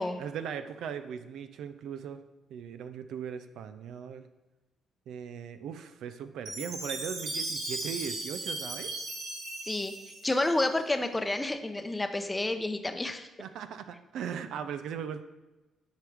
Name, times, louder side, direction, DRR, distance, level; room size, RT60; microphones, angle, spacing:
voice 1, 0.2-2.2 2.5-4.3 5.1-8.9 13.4-15.2, right 7 dB, 80° right, 10 dB, 0.5 m, -38 dB
Chime, 6.5-10.8, right 2 dB, 55° right, 1.9 m, -37 dB
voice 2, 10.2-13.3, left 2 dB, 15° left, 7 dB, 0.6 m, -29 dB
10.5 x 4.7 x 3.4 m, 1.1 s
cardioid pair, 90°, 0 cm